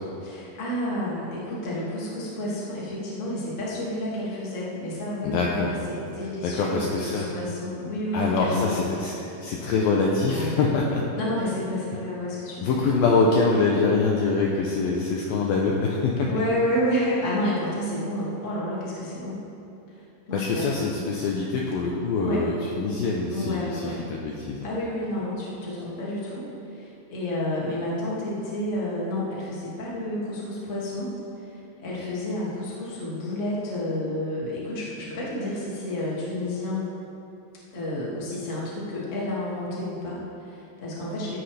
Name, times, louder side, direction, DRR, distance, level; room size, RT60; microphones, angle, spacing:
voice 1, 0.2-8.9 10.3-10.9 11.2-12.9 16.2-19.4 20.0-20.9 22.2-22.4 23.3-24.0 24.6-36.9 37.7-41.4, left 1 dB, 25° left, -7 dB, 1.7 m, -30 dB
voice 2, 5.2-5.7 6.4-7.3 8.1-9.1 9.4-11.0 12.6-16.3 20.3-24.7, left 4 dB, 75° left, -2 dB, 2.3 m, -24 dB
16.0 x 9.9 x 3.5 m, 2.8 s
omnidirectional pair, 5.0 m